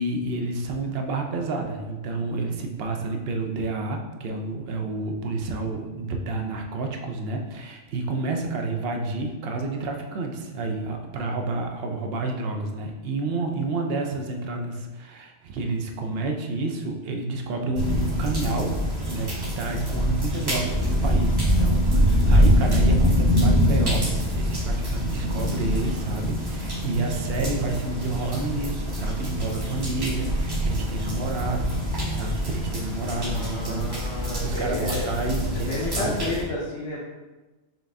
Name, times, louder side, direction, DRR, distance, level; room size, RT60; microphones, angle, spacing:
voice 1, 0.0-18.8 19.1-31.8 32.1-36.2, right 3 dB, 65° right, 3 dB, 0.7 m, -30 dB
sound 1, 17.7-36.4, equal, 25° right, 0.7 m, -24 dB
voice 2, 33.3-35.0 35.5-37.0, left 2 dB, 75° left, -5 dB, 1.0 m, -31 dB
5.7 x 2.5 x 3.4 m, 1.2 s
omnidirectional pair, 1.2 m